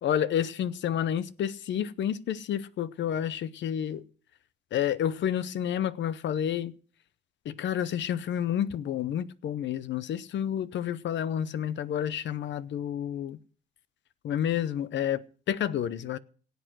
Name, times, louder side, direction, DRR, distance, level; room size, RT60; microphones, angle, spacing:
voice 1, 0.0-4.0 4.7-6.7 7.4-13.4 14.2-16.2, left 9 dB, 65° left, 0.8 m, -30 dB
17.5 x 8.0 x 6.2 m
cardioid pair, 90°, 20 cm